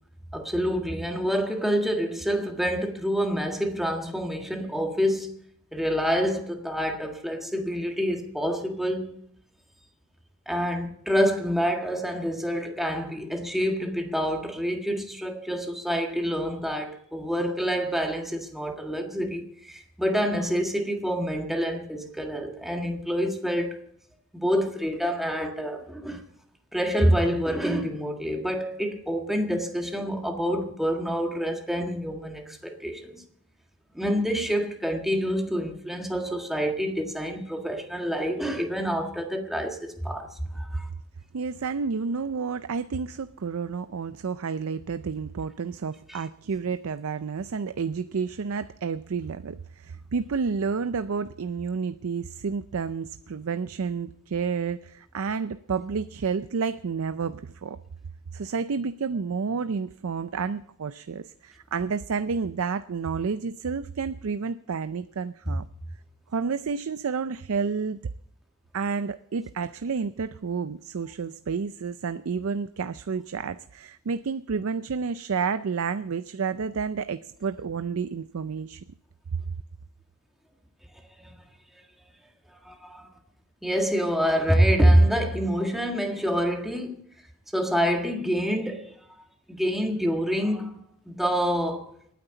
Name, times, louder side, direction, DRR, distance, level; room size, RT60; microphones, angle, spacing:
voice 1, 0.3-5.3 5.7-9.2 10.5-23.8 24.3-26.2 26.7-33.2 33.9-40.3 40.5-40.9 46.1-46.2 81.2-81.3 82.6-83.1 83.6-87.0 87.5-88.9 89.5-90.8 91.1-91.9, equal, ahead, 1.6 m, -27 dB
voice 2, 41.3-57.8 58.3-65.7 66.3-68.0 68.7-78.8 79.3-79.4, right 5 dB, 65° right, 0.5 m, -30 dB
27.5 x 9.5 x 3.9 m
head